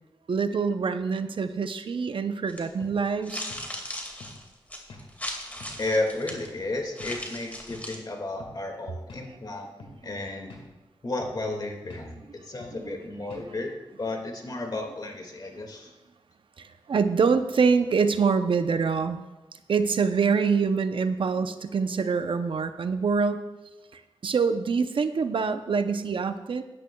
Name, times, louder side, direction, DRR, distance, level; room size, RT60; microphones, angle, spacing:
voice 1, 0.3-3.5 12.8-13.0 13.2-13.4 16.6-19.2 19.7-23.4 23.9-26.6, right 5 dB, 65° right, 10 dB, 0.6 m, -25 dB
sound 1, 2.5-2.7 3.2-6.5 6.9-8.0, left 1 dB, 15° left, 2.0 m, -37 dB
sound 2, 2.8-3.0 3.5-3.7 4.2-4.4 4.9-5.1 5.6-5.8 6.3-6.5 7.0-7.2 7.7-7.9 8.4-8.6 9.1-9.3 9.8-10.0 10.5-10.7 11.2-11.4 11.9-12.1 12.6-12.8 13.3-13.5, left 2 dB, 85° left, 1.8 m, -45 dB
voice 2, 5.8-9.7 10.0-10.5 11.0-13.7 14.0-15.9, left 2 dB, 45° left, 2 dB, 2.0 m, -33 dB
16.5 x 10.5 x 2.3 m, 1.1 s
cardioid pair, 60°, 9 cm